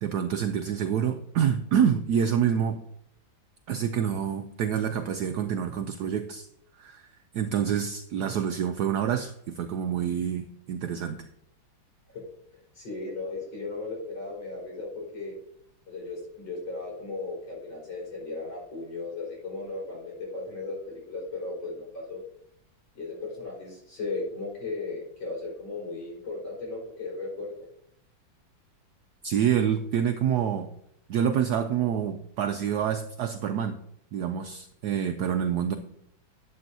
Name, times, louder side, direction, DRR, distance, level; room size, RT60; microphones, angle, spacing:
voice 1, 0.0-2.8 3.7-6.5 6.8-7.1 7.3-11.3 29.2-30.7 31.1-33.8 34.1-35.8, right 8 dB, 70° right, 7 dB, 1.0 m, -27 dB
voice 2, 12.7-15.3 15.9-22.2 22.9-27.5, left 3 dB, 75° left, -4 dB, 5.1 m, -36 dB
12.0 x 8.0 x 2.7 m, 0.72 s
omnidirectional pair, 2.1 m